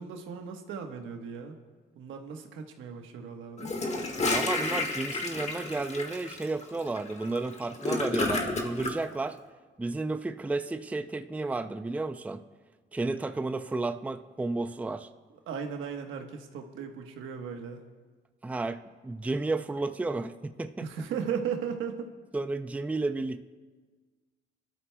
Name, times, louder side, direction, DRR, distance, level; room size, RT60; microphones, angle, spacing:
voice 1, 0.0-1.5 1.9-3.8 15.5-17.8 20.8-22.1, right 7 dB, 85° right, 5 dB, 1.2 m, -36 dB
Gurgling / Toilet flush, 3.6-8.9, left 2 dB, 35° left, 1.5 m, -31 dB
voice 2, 4.3-9.4 9.8-12.4 12.9-15.1 18.4-20.9 22.3-23.4, right 3 dB, 5° right, 10 dB, 0.4 m, -32 dB
24.0 x 12.5 x 2.2 m, 1.4 s
cardioid pair, 90°, 20 cm